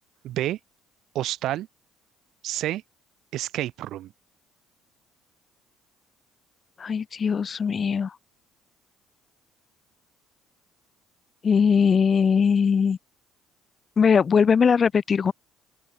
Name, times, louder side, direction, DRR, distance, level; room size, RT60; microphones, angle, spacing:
voice 1, 0.2-0.6 1.2-1.7 2.4-2.8 3.3-4.1, right 14 dB, 65° right, 5.2 m, -29 dB
voice 2, 6.8-8.1 11.4-13.0 14.0-15.3, left 6 dB, 40° left, 4.6 m, -20 dB
open air
hypercardioid pair, 55°, 0 cm